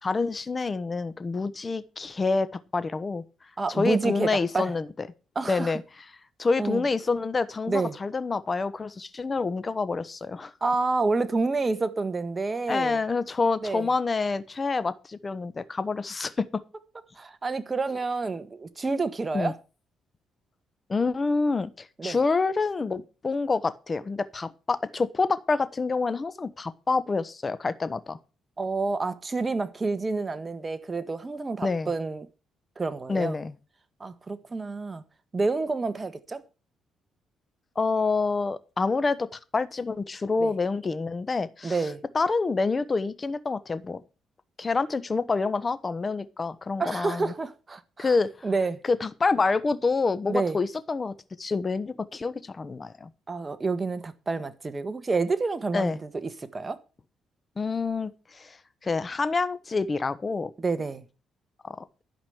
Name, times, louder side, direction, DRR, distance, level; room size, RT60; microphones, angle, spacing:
voice 1, 0.0-2.5 2.7-3.2 3.7-4.9 5.5-5.8 6.4-10.5 12.7-16.6 19.3-19.5 20.9-28.2 31.6-31.9 33.1-33.5 37.8-41.8 42.1-44.0 44.6-47.3 48.0-48.3 48.9-53.1 55.7-56.0 57.6-58.6 58.8-60.5 61.6-61.8, left 4 dB, 30° left, 1.0 m, -27 dB
voice 2, 3.6-4.7 5.3-5.8 6.6-6.8 7.7-8.0 10.6-13.0 13.6-13.9 17.2-19.5 22.0-22.2 28.6-32.3 32.8-33.4 34.0-35.0 35.3-36.4 40.4-40.5 41.6-42.0 46.8-48.1 48.4-48.8 50.3-50.6 53.3-56.8 60.6-61.0, right 3 dB, 25° right, 1.4 m, -29 dB
12.0 x 5.2 x 7.9 m
cardioid pair, 90°, 0 cm